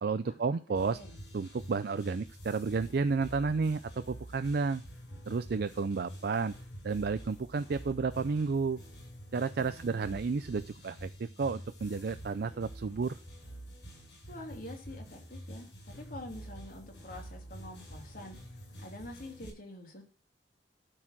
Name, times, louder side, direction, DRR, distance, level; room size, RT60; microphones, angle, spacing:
voice 1, 0.0-1.0 1.3-4.8 5.3-6.5 6.8-8.8 9.3-13.2, right 4 dB, 55° right, 11 dB, 0.4 m, -31 dB
sound 1, 0.7-19.5, equal, 70° left, 5.7 m, -48 dB
voice 2, 0.7-1.2 9.6-10.2 14.3-18.4 18.8-20.0, left 1 dB, 50° left, 1 dB, 3.0 m, -46 dB
12.5 x 4.8 x 5.9 m, 0.38 s
head